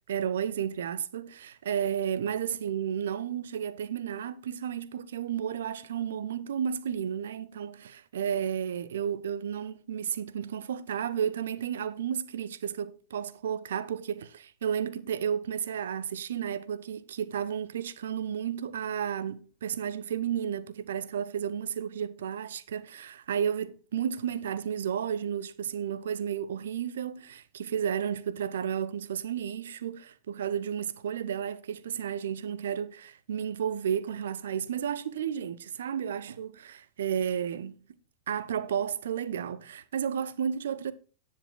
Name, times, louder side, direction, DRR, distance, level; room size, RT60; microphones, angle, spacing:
voice 1, 0.1-37.8 38.3-40.9, right 8 dB, 65° right, 0.6 m, -32 dB
17.5 x 7.3 x 2.2 m
figure-of-eight pair, 90°, 0 cm